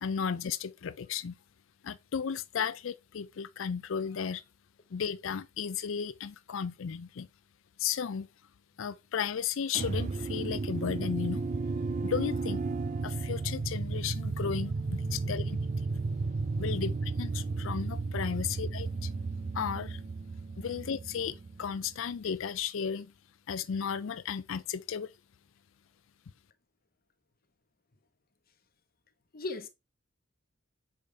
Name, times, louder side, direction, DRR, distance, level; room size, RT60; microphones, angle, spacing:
voice 1, 0.0-1.3 1.8-4.4 4.9-7.3 7.8-8.3 8.8-11.4 12.0-12.6 13.0-15.6 16.6-19.1 19.5-20.0 20.6-23.1 23.5-25.1, left 7 dB, 70° left, 0.4 m, -34 dB
sound 1, 9.7-22.0, right 3 dB, 40° right, 0.4 m, -33 dB
voice 2, 15.1-15.4 16.0-16.1 29.3-29.7, left 3 dB, 50° left, 0.9 m, -40 dB
6.8 x 5.1 x 3.3 m
head